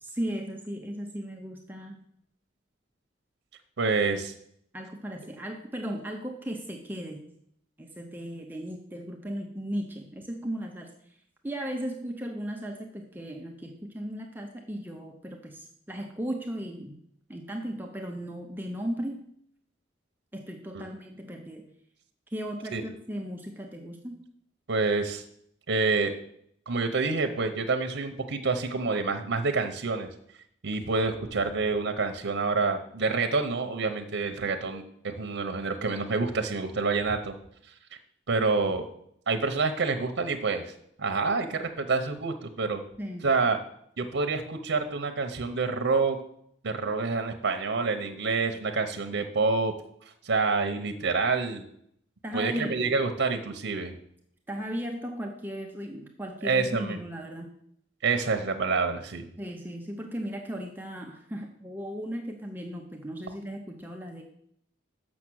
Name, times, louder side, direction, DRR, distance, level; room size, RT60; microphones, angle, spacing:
voice 1, 0.0-2.0 4.7-7.3 7.8-10.9 11.4-17.0 17.3-19.3 20.3-21.6 22.3-24.2 43.0-43.3 52.2-53.0 54.5-57.5 59.4-64.2, equal, 10° right, 1 dB, 0.7 m, -36 dB
voice 2, 3.8-4.3 20.7-20.8 22.7-22.8 24.7-25.2 25.7-26.1 26.7-30.1 30.6-37.3 38.3-38.9 39.3-40.7 41.0-42.8 43.2-43.6 44.0-46.2 46.6-49.7 50.2-51.6 52.3-53.9 56.4-57.0 58.0-59.3, right 4 dB, 85° right, 6 dB, 0.8 m, -27 dB
7.1 x 6.3 x 6.2 m, 0.70 s
head